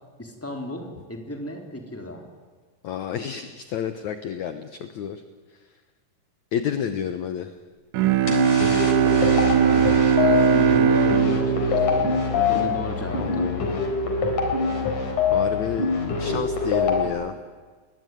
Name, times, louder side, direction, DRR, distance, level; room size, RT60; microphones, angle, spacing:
voice 1, 0.2-2.2 8.8-13.5, left 1 dB, 5° left, 2 dB, 3.1 m, -35 dB
voice 2, 2.8-5.2 6.5-7.5 13.2-14.0 14.7-14.9 15.3-17.4, left 8 dB, 70° left, 9 dB, 1.8 m, -30 dB
Bowed string instrument, 7.9-13.1, right 8 dB, 70° right, 2.4 m, -21 dB
sound 1, 8.3-17.1, left 4 dB, 50° left, 5.0 m, -24 dB
29.5 x 21.0 x 9.3 m, 1.4 s
omnidirectional pair, 4.9 m